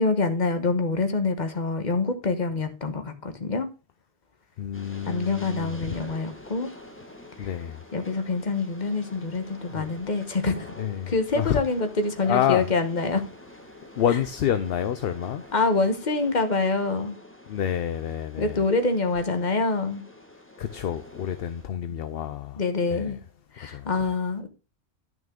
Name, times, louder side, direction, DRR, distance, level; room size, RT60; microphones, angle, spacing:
voice 1, 0.0-3.7 5.0-6.7 7.4-7.5 7.9-10.7 11.1-13.2 15.5-17.2 18.4-20.0 22.6-23.2 23.5-24.5, left 3 dB, 40° left, 1.3 m, -26 dB
voice 2, 4.6-6.0 7.4-7.8 9.7-9.9 10.8-11.6 12.2-12.7 14.0-15.4 17.5-18.6 20.6-22.6 22.9-23.2 23.7-23.8, left 9 dB, 60° left, 0.8 m, -28 dB
Train, 4.7-21.6, left 1 dB, 10° left, 1.6 m, -47 dB
11.0 x 6.1 x 3.7 m
omnidirectional pair, 1.2 m